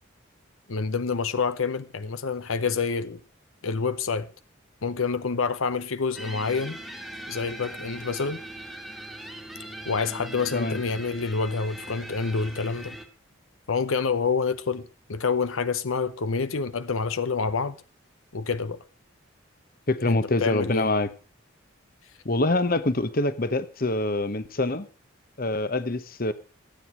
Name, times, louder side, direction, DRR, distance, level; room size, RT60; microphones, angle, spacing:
voice 1, 0.7-3.2 3.6-4.3 4.8-6.8 7.3-8.4 9.9-13.0 13.7-17.8 18.3-18.8 20.0-20.9, left 4 dB, 75° left, 0.8 m, -27 dB
sound 1, 6.2-13.1, right 1 dB, ahead, 1.6 m, -40 dB
voice 2, 19.9-21.1 22.2-24.9 25.4-26.3, left 2 dB, 45° left, 1.0 m, -25 dB
15.0 x 9.4 x 6.1 m
head